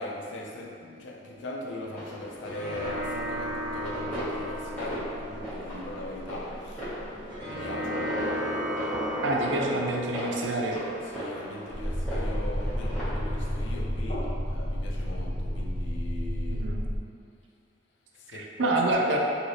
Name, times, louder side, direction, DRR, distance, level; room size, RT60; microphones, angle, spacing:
voice 1, 0.0-6.9 7.5-8.1 11.0-16.7 18.1-19.2, left 1 dB, 80° left, 0 dB, 0.4 m, -39 dB
sound 1, 1.8-13.6, equal, 10° left, 1.1 m, -39 dB
sound 2, 2.1-13.1, equal, 25° right, 0.7 m, -37 dB
sound 3, 2.9-10.2 11.7-17.0, equal, 40° left, 1.5 m, -33 dB
voice 2, 9.2-10.8 16.5-16.8 18.3-19.2, right 2 dB, 80° right, 0 dB, 0.4 m, -27 dB
3.2 x 2.7 x 2.6 m, 2.4 s
head